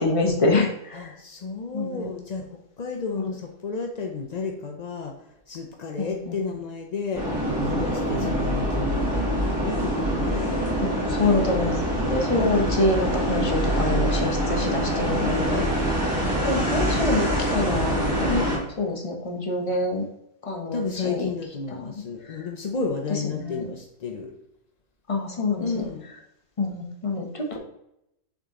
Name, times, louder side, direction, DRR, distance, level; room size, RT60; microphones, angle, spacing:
voice 1, 0.0-1.1 1.7-2.1 3.2-3.3 6.0-6.3 8.2-8.3 10.8-11.8 12.1-15.6 16.2-20.0 20.4-21.3 21.7-21.9 22.2-22.4 23.3-23.6 25.1-25.8 26.6-27.6, left 2 dB, 25° left, 1 dB, 0.9 m, -26 dB
voice 2, 0.9-10.5 12.2-13.2 15.1-15.8 20.7-24.3 25.6-26.1, left 4 dB, 60° left, 2 dB, 0.4 m, -32 dB
Ikea Carpark, 7.1-18.6, equal, 10° right, 2.5 m, -25 dB
6.6 x 3.8 x 3.7 m, 0.81 s
omnidirectional pair, 1.6 m